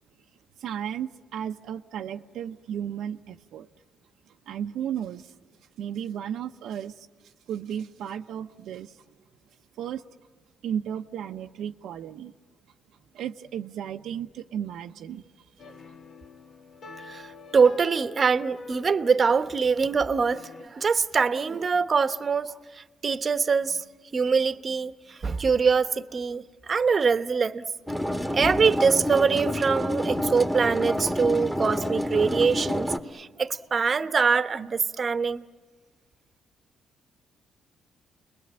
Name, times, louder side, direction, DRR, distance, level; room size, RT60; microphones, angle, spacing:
voice 1, 0.6-3.7 4.5-5.3 5.8-9.0 9.8-10.0 10.6-12.3 13.1-15.2, right 9 dB, 80° right, 0.7 m, -34 dB
sound 1, 15.6-20.7, left 3 dB, 55° left, 1.6 m, -45 dB
voice 2, 17.1-23.8 24.1-27.7 28.3-35.5, right 5 dB, 40° right, 1.0 m, -24 dB
sound 2, 27.9-33.0, left 1 dB, 5° left, 1.6 m, -28 dB
30.0 x 21.5 x 8.9 m
cardioid pair, 90°, 0 cm